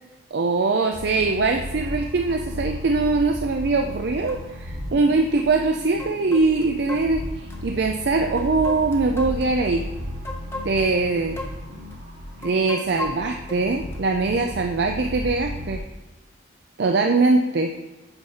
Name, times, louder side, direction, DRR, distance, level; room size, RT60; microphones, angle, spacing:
voice 1, 0.3-9.9 10.6-11.4 12.4-15.8 16.8-17.7, right 3 dB, 55° right, 4 dB, 0.4 m, -22 dB
sound 1, 0.9-15.8, left 1 dB, 80° right, 2.6 m, -35 dB
sound 2, 3.6-3.7 4.3-4.4 5.4-5.5 6.0-7.6 8.4-9.7 10.2-11.0 11.4-11.6 11.9-12.0 12.4-14.0 14.5-14.6, left 2 dB, 15° left, 0.7 m, -36 dB
8.0 x 4.2 x 5.5 m, 1.1 s
head